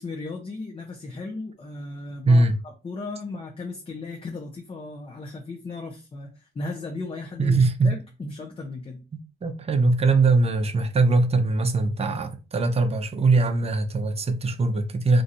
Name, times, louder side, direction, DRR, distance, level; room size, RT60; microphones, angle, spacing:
voice 1, 0.0-9.0, left 3 dB, 30° left, 0.7 m, -36 dB
voice 2, 7.4-8.0 9.1-15.2, right 3 dB, 30° right, 0.6 m, -21 dB
2.6 x 2.4 x 4.1 m
cardioid pair, 90°, 20 cm